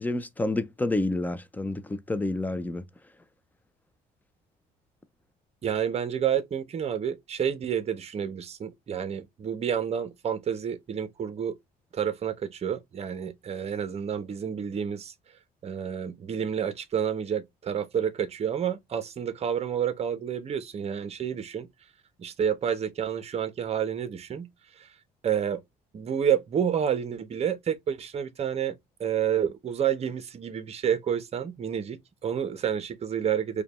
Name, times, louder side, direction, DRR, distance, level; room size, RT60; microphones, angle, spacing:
voice 1, 0.0-2.9, left 2 dB, 10° left, 0.4 m, -29 dB
voice 2, 5.6-11.6 11.9-15.1 15.6-21.7 22.2-24.5 24.8-24.9 25.2-25.6 25.9-33.6, right 8 dB, 40° right, 0.8 m, -29 dB
4.9 x 2.3 x 2.9 m
cardioid pair, 110°, 17 cm